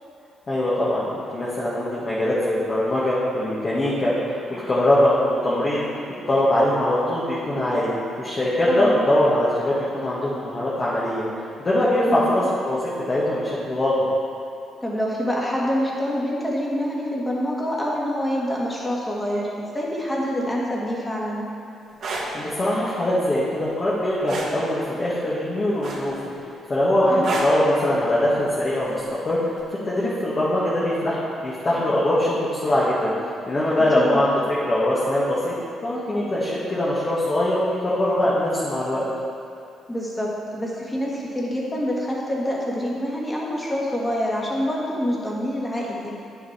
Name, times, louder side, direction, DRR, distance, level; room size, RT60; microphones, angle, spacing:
voice 1, 0.5-5.8 6.3-7.9 8.2-11.3 11.6-13.9 22.3-26.1 26.7-29.5 29.8-33.1 33.5-34.3 34.7-35.5 35.8-39.0, left 1 dB, 35° left, -8 dB, 1.9 m, -22 dB
voice 2, 8.7-9.1 12.1-12.4 14.8-21.4 27.1-27.2 34.0-34.2 39.9-46.1, equal, 15° left, -4 dB, 2.0 m, -26 dB
sound 1, 21.9-22.3 24.3-24.5 25.8-26.3 27.2-27.6 29.0-29.2, right 3 dB, 60° right, 1.7 m, -28 dB
10.0 x 6.7 x 4.4 m, 2.5 s
cardioid pair, 90°, 0 cm